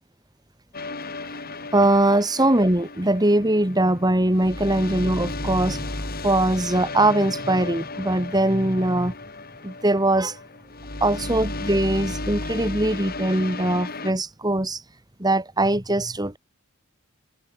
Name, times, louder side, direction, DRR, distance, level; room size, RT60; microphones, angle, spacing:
sound 1, 0.7-14.1, left 2 dB, 45° left, 5.0 m, -34 dB
voice 1, 1.7-9.1 9.6-10.4 11.0-14.8 15.2-16.4, right 1 dB, 20° right, 2.4 m, -21 dB
head